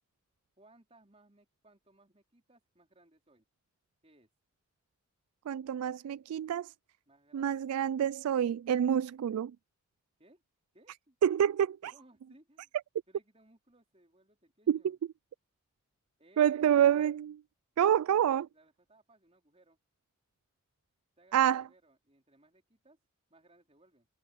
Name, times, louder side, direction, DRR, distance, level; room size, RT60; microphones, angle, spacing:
voice 1, 0.6-3.4 4.0-4.3 7.1-7.9 10.2-10.4 10.7-11.2 11.8-12.7 13.1-15.0 16.2-16.8 17.8-19.8 21.2-23.0 23.3-24.1, right 1 dB, 25° right, 4.4 m, -64 dB
voice 2, 5.5-6.7 7.3-9.5 11.2-11.9 14.7-15.0 16.4-17.4 17.8-18.5 21.3-21.7, right 9 dB, 90° right, 0.3 m, -27 dB
head